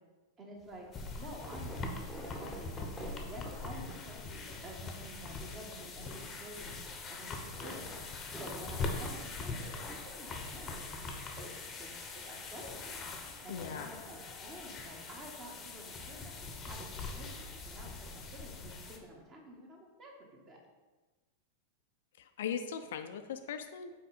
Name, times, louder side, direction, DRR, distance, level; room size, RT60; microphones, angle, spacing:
voice 1, 0.4-0.8 1.1-7.9 8.3-10.8 11.4-11.5 11.8-13.0 13.4-20.6, right 1 dB, 25° right, 0 dB, 1.3 m, -50 dB
sound 1, 0.6-18.4, right 1 dB, 5° right, 1.0 m, -53 dB
sound 2, 0.9-19.0, left 3 dB, 25° left, 0.8 m, -42 dB
voice 2, 13.5-13.9 22.2-23.9, left 7 dB, 60° left, 8 dB, 0.3 m, -39 dB
5.8 x 4.3 x 4.0 m, 1.2 s
figure-of-eight pair, 90°, 0 cm